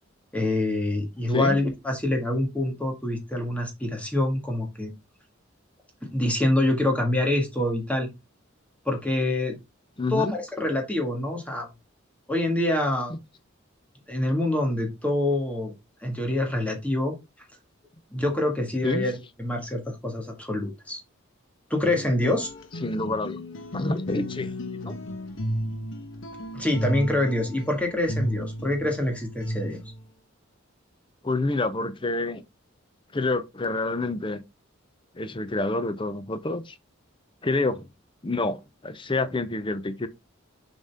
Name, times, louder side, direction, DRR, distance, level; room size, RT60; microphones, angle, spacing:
voice 1, 0.3-4.9 6.1-8.1 8.9-9.5 10.1-11.7 12.3-13.1 14.1-15.7 16.0-17.1 18.1-19.1 19.4-21.0 21.7-22.5 26.5-29.8, left 1 dB, 5° left, 1.7 m, -26 dB
voice 2, 10.0-10.3 13.1-13.2 18.8-19.1 22.8-23.4 23.7-24.5 24.8-25.0 31.2-32.4 33.1-34.4 35.2-36.7 37.4-37.9 38.2-40.1, left 2 dB, 25° left, 0.6 m, -28 dB
sound 1, 21.8-30.0, equal, 70° left, 1.1 m, -33 dB
7.3 x 4.1 x 3.4 m
head